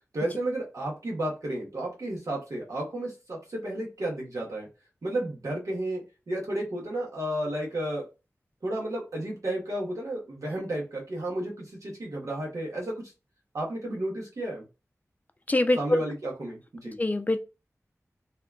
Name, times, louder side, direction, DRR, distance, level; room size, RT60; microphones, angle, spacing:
voice 1, 0.1-4.7 5.0-8.0 8.6-13.0 13.5-14.6 15.8-17.0, right 1 dB, 85° right, 1.2 m, -32 dB
voice 2, 15.5-16.0 17.0-17.4, left 2 dB, 30° left, 0.3 m, -24 dB
2.8 x 2.3 x 2.2 m
wide cardioid pair, 55°, 6 cm